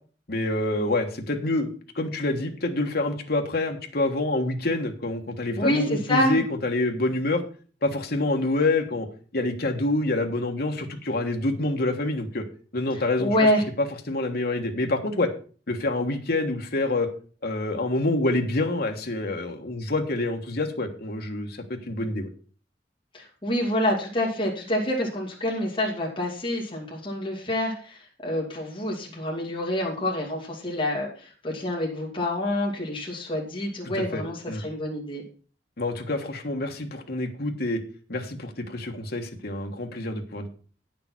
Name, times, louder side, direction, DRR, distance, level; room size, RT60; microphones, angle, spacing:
voice 1, 0.3-7.4 7.8-9.1 9.3-12.4 12.7-13.3 14.1-15.3 15.7-17.1 17.4-22.3 33.9-34.2 34.5-34.6 35.8-37.8 38.1-40.5, left 2 dB, 60° left, 4 dB, 1.4 m, -27 dB
voice 2, 5.6-6.4 13.2-13.6 23.1-35.2, left 1 dB, 30° left, -2 dB, 2.5 m, -27 dB
9.5 x 6.9 x 6.0 m, 0.40 s
head